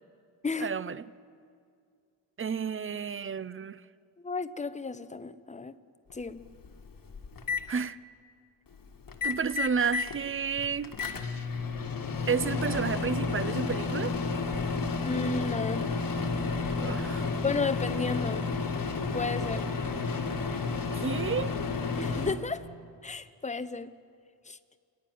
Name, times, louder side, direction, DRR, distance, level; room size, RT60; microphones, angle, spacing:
voice 1, 0.6-1.0 2.4-3.8 7.7-8.0 9.2-10.9 12.3-14.2 16.8-17.3 20.9-21.5, right 6 dB, 30° right, 17 dB, 0.4 m, -31 dB
voice 2, 4.2-5.8 6.1-6.4 15.0-15.9 17.4-18.5 19.1-19.7 22.0-22.7 23.0-23.9 24.4-24.6, left 4 dB, 15° left, 12 dB, 0.6 m, -33 dB
Microwave oven, 6.1-6.2 6.6-7.6 9.1-10.2 10.5-22.3, left 4 dB, 45° left, 1.5 m, -31 dB
28.0 x 10.5 x 9.2 m, 2.3 s
wide cardioid pair, 115°, 45 cm